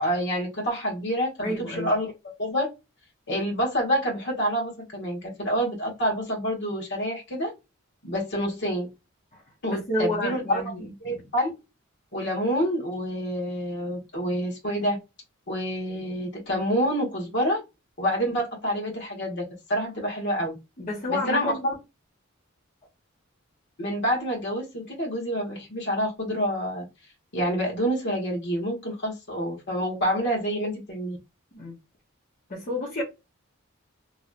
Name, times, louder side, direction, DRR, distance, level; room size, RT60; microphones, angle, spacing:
voice 1, 0.0-2.1 2.4-2.7 3.3-7.5 8.0-8.9 9.6-10.7 11.0-11.5 12.1-15.0 15.5-17.6 18.0-20.6 21.1-21.8 23.8-26.8 27.3-31.2, equal, 60° left, 1.6 m, -27 dB
voice 2, 1.4-1.9 9.3-9.4 9.7-11.2 20.8-21.6 31.5-31.8 32.5-33.0, left 1 dB, 40° left, 1.0 m, -30 dB
3.1 x 2.7 x 2.5 m
head